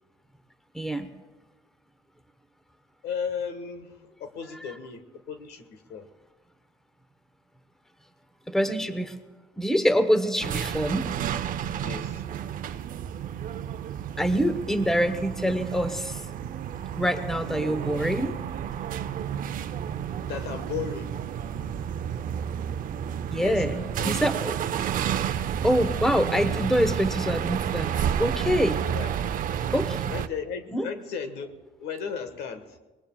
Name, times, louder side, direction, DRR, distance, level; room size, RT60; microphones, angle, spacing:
voice 1, 0.7-1.1 8.5-9.1 9.6-11.1 14.2-16.2 17.0-18.3 23.3-24.5 25.6-27.9 28.2-28.8 29.7-30.0 30.7-30.9, equal, ahead, 9 dB, 1.0 m, -25 dB
voice 2, 3.0-6.1 11.8-12.2 20.3-21.2 23.4-24.2 28.8-29.1 30.1-32.8, left 6 dB, 80° left, 9 dB, 1.4 m, -35 dB
sound 1, 10.4-30.3, right 9 dB, 55° right, 0.6 m, -31 dB
23.0 x 20.0 x 2.3 m, 1.2 s
cardioid pair, 110°, 17 cm